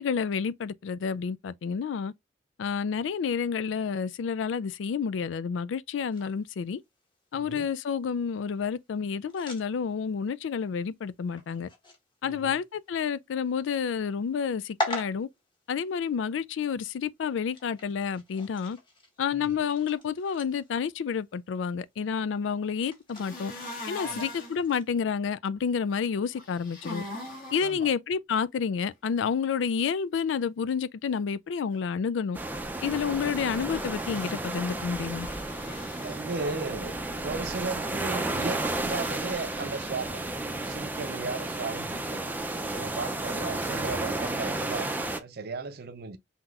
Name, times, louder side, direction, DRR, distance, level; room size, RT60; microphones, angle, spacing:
voice 1, 0.0-2.1 2.6-6.8 7.3-11.7 12.2-15.3 15.7-18.8 19.2-23.5 23.9-27.0 27.5-32.4 32.8-35.3, left 6 dB, 90° left, 0.4 m, -29 dB
sound 1, 6.1-24.9, left 1 dB, 25° left, 1.4 m, -44 dB
voice 2, 7.4-7.7 12.2-12.6 19.3-19.6 24.0-24.3 27.6-27.9 35.9-36.9 37.2-40.2 40.6-42.2 42.7-46.2, right 4 dB, 55° right, 0.5 m, -36 dB
sound 2, 23.1-24.5 26.3-27.7 33.6-34.4 35.1-36.2, left 1 dB, 50° left, 2.2 m, -41 dB
sound 3, 32.3-45.2, right 2 dB, 10° right, 0.5 m, -32 dB
5.8 x 2.8 x 2.4 m
head